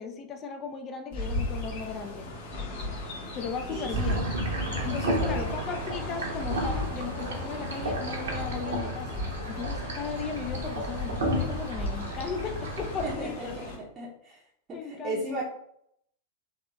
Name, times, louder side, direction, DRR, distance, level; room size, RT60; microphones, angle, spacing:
voice 1, 0.0-2.3 3.3-4.3 4.8-13.6 14.7-15.4, left 5 dB, 30° left, 5 dB, 0.4 m, -36 dB
Chirp tweet, 1.1-13.8, left 1 dB, 50° left, 1.0 m, -36 dB
sound 1, 3.9-13.1, equal, 65° right, 0.8 m, -32 dB
voice 2, 5.1-5.5 13.0-13.6 14.0-14.4 14.7-15.4, right 2 dB, 25° right, -5 dB, 0.6 m, -35 dB
3.8 x 2.9 x 2.3 m, 0.72 s
figure-of-eight pair, 90°, 0 cm